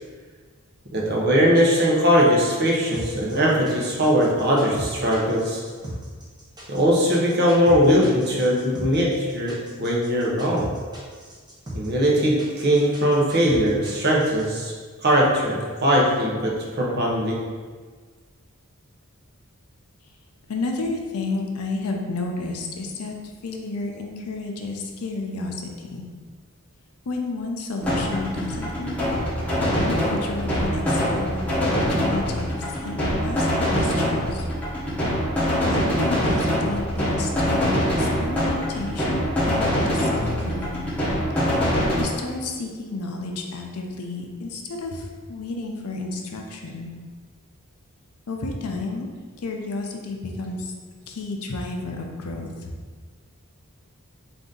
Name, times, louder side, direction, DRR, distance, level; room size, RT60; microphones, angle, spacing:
voice 1, 0.9-5.6 6.7-10.7 11.7-14.7 15.0-17.4, equal, 45° right, -3 dB, 0.8 m, -20 dB
sound 1, 2.9-14.4, right 1 dB, 20° right, 0.9 m, -37 dB
voice 2, 20.5-23.2 23.4-26.0 27.1-29.0 29.9-34.5 35.7-40.8 42.0-46.9 48.3-49.1 49.4-50.7 51.1-52.7, left 3 dB, 85° left, 2 dB, 0.6 m, -31 dB
sound 2, 27.8-42.0, equal, 5° left, 0.9 m, -24 dB
3.9 x 2.6 x 3.7 m, 1.5 s
head